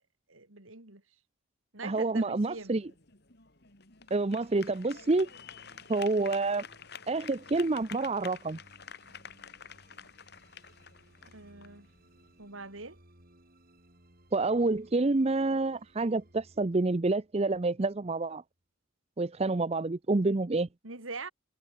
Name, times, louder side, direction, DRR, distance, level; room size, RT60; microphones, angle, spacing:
voice 1, 0.3-1.0 1.7-2.8 11.2-11.9 12.4-13.0 20.8-21.3, right 3 dB, 85° right, 4.4 m, -43 dB
voice 2, 1.8-2.8 4.1-5.3 5.9-6.7 7.1-8.6 14.3-18.4 19.2-20.7, right 3 dB, 30° right, 0.6 m, -28 dB
sound 1, 2.4-12.5, left 7 dB, 55° left, 3.8 m, -50 dB
sound 2, 3.9-18.3, right 1 dB, 45° right, 7.0 m, -62 dB
head